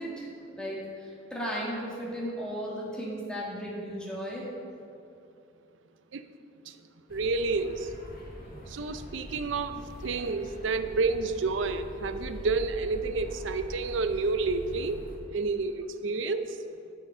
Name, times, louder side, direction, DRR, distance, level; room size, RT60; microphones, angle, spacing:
voice 1, 0.0-4.5, equal, 5° left, -5 dB, 1.8 m, -35 dB
sound 1, 7.1-15.2, equal, 50° left, 1.6 m, -43 dB
voice 2, 7.1-7.9 8.7-15.0 15.3-16.5, right 3 dB, 70° right, 10 dB, 0.5 m, -30 dB
9.9 x 6.6 x 5.6 m, 2.6 s
head